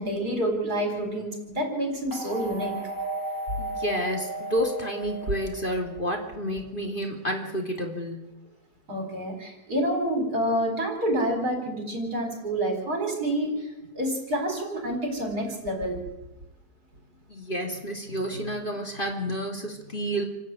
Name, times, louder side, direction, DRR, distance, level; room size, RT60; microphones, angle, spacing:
voice 1, 0.0-2.8 8.9-16.0, right 1 dB, 70° right, 3 dB, 5.2 m, -28 dB
sound 1, 2.1-6.3, right 2 dB, 10° right, 4.4 m, -35 dB
voice 2, 3.6-8.3 17.3-20.2, equal, 30° left, 1 dB, 3.3 m, -30 dB
28.0 x 11.0 x 9.1 m, 1.0 s
omnidirectional pair, 1.7 m